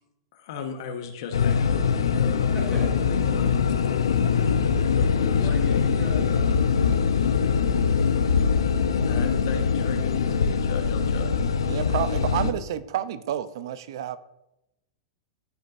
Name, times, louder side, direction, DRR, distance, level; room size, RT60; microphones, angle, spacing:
voice 1, 0.3-3.6 4.9-5.5 9.0-11.5, left 5 dB, 65° left, 5 dB, 1.3 m, -37 dB
sound 1, 1.3-12.5, left 6 dB, 90° left, 0.7 m, -23 dB
voice 2, 5.4-7.5, equal, 15° right, -5 dB, 2.8 m, -40 dB
voice 3, 11.7-14.2, right 11 dB, 70° right, 14 dB, 0.6 m, -29 dB
14.0 x 5.3 x 2.7 m, 0.87 s
hypercardioid pair, 110°, 2 cm